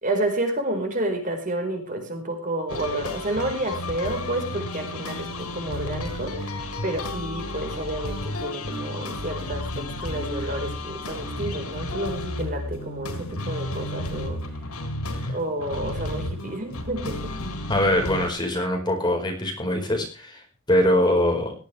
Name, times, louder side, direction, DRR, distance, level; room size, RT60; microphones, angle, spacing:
voice 1, 0.0-14.4 15.3-17.3, right 1 dB, 40° right, 4 dB, 4.6 m, -30 dB
sound 1, 2.7-18.3, left 1 dB, 90° left, 4.1 m, -32 dB
voice 2, 17.7-21.5, left 1 dB, 20° left, 2 dB, 4.9 m, -23 dB
18.5 x 14.5 x 3.4 m, 0.35 s
head